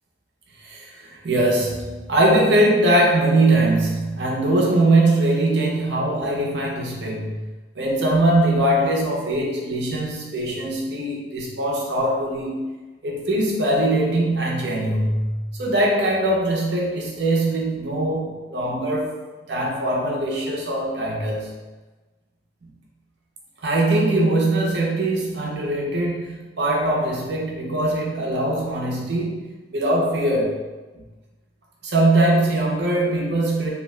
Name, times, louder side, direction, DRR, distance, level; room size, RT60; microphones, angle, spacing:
voice 1, 0.6-7.5 7.7-12.7 13.0-19.2 19.5-21.5 22.6-22.7 23.6-30.6 30.9-31.0 31.8-33.7, right 1 dB, 75° right, -2 dB, 0.6 m, -21 dB
2.7 x 2.2 x 3.1 m, 1.2 s
head